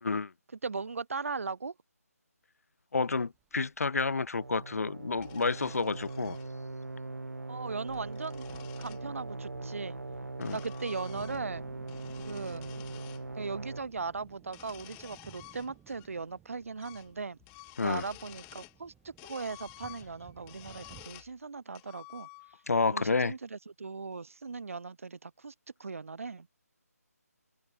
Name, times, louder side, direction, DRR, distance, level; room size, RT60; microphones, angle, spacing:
voice 1, 0.5-1.8 7.5-8.5 8.8-10.0 10.5-11.7 12.3-12.6 13.3-17.4 17.8-22.6 22.9-25.5 25.8-26.5, right 4 dB, 55° right, 6.1 m, -38 dB
voice 2, 2.9-6.4 10.4-10.5 17.8-18.0 22.7-23.3, left 4 dB, 65° left, 0.7 m, -29 dB
sound 1, 3.1-21.1, right 11 dB, 10° right, 3.2 m, -59 dB
sound 2, 4.4-13.8, right 2 dB, 80° right, 1.9 m, -41 dB
sound 3, 5.2-6.5 7.7-9.0 9.9-11.6 11.8-13.2 14.4-16.1 16.4-16.5 16.8-17.1 17.4-18.8 19.2-21.3 21.7-22.7, left 33 dB, 15° left, 5.0 m, -52 dB
open air
figure-of-eight pair, 155°, 9 cm